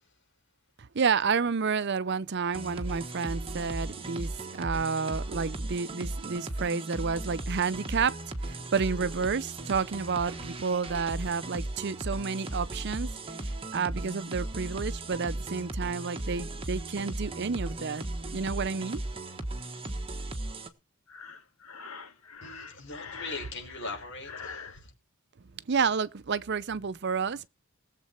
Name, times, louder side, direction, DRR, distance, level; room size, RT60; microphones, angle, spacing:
voice 1, 0.9-8.1 8.4-13.1 13.4-19.0 25.7-27.5, right 5 dB, 50° right, 0.6 m, -30 dB
sound 1, 2.5-20.7, right 2 dB, 25° right, 1.4 m, -36 dB
Breathing, 21.1-24.8, left 5 dB, 85° left, 1.8 m, -44 dB
voice 2, 22.4-24.9, left 3 dB, 55° left, 6.0 m, -40 dB
19.5 x 7.6 x 4.4 m
head